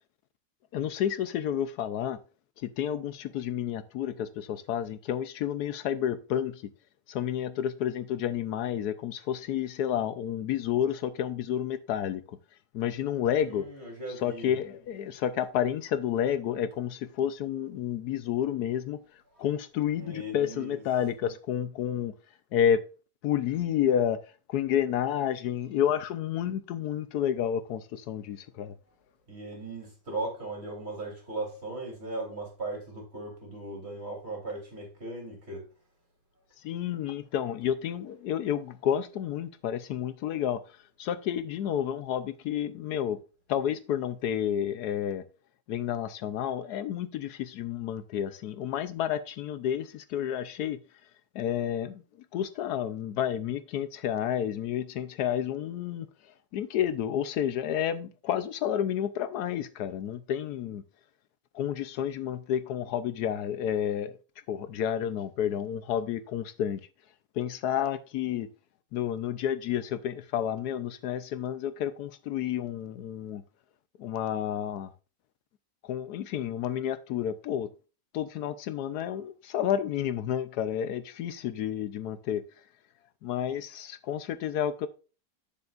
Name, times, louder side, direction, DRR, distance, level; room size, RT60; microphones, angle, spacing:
voice 1, 0.7-2.2 2.6-6.6 7.1-12.4 12.7-13.7 14.2-19.0 19.4-22.1 22.5-22.9 23.2-24.2 24.5-28.7 36.6-40.6 41.0-43.2 43.5-45.2 45.7-50.8 51.3-52.0 52.3-56.1 56.5-60.8 61.5-64.1 64.5-66.8 67.4-68.5 68.9-73.4 74.0-74.9 75.8-77.7 78.1-82.4 83.2-84.9, left 9 dB, 75° left, 1.2 m, -30 dB
voice 2, 13.4-14.6 19.3-19.5 20.0-20.8 29.3-35.7, right 2 dB, 40° right, 3.4 m, -38 dB
9.7 x 7.0 x 2.4 m
omnidirectional pair, 1.7 m